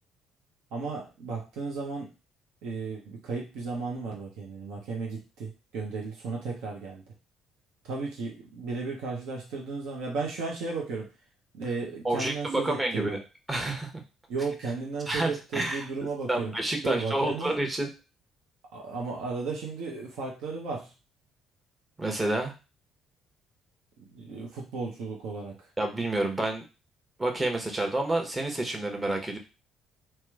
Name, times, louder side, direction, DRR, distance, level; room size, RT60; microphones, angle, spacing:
voice 1, 0.7-2.1 2.6-7.0 7.8-11.1 11.5-13.2 14.3-16.5 16.8-17.6 18.7-20.9 24.0-25.6, right 4 dB, 70° right, -1 dB, 0.8 m, -34 dB
voice 2, 12.0-13.2 13.5-13.9 15.1-15.9 16.3-17.9 22.0-22.5 25.8-26.6 27.2-29.4, right 2 dB, 20° right, 3 dB, 1.0 m, -29 dB
2.9 x 2.2 x 3.5 m, 0.30 s
hypercardioid pair, 50°, 0 cm